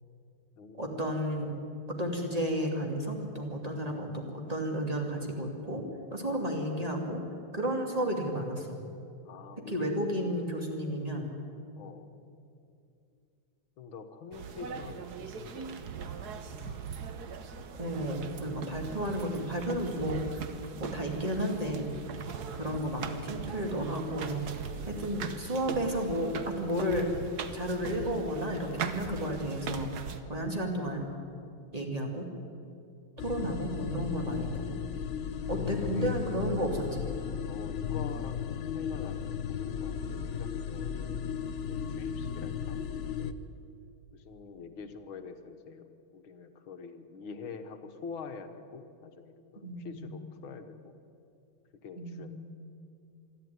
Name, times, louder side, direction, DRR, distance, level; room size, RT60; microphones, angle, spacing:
voice 1, 0.8-1.5 1.9-5.8 6.1-7.2 7.5-8.8 9.7-11.3 17.8-20.4 20.8-21.9 22.5-24.4 24.9-27.1 27.5-29.9 30.3-31.1 31.7-32.3 33.2-34.8 35.5-37.1 49.6-50.2 52.0-52.3, equal, 15° right, 2 dB, 2.6 m, -32 dB
voice 2, 9.3-9.9 11.3-12.1 13.8-16.0 16.3-16.9 35.5-36.2 37.5-41.2 41.7-42.9 43.2-43.4 44.1-45.9 46.1-50.9 51.7-52.3, left 5 dB, 70° left, 7 dB, 2.0 m, -46 dB
sound 1, 14.3-30.2, right 6 dB, 55° right, 1.4 m, -40 dB
sound 2, 33.2-43.3, left 7 dB, 85° left, 0.6 m, -35 dB
26.0 x 12.0 x 9.5 m, 2.6 s
omnidirectional pair, 2.3 m